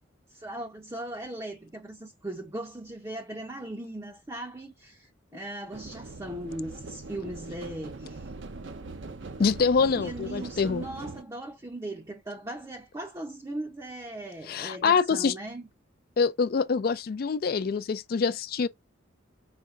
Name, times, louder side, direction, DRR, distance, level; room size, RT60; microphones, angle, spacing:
voice 1, 0.3-8.3 9.9-15.6, right 1 dB, 15° right, 0.6 m, -38 dB
sound 1, 5.7-11.2, right 3 dB, 70° right, 0.7 m, -41 dB
voice 2, 9.4-10.8 14.5-15.3 16.2-18.7, left 5 dB, 50° left, 0.4 m, -25 dB
5.0 x 3.2 x 2.4 m
head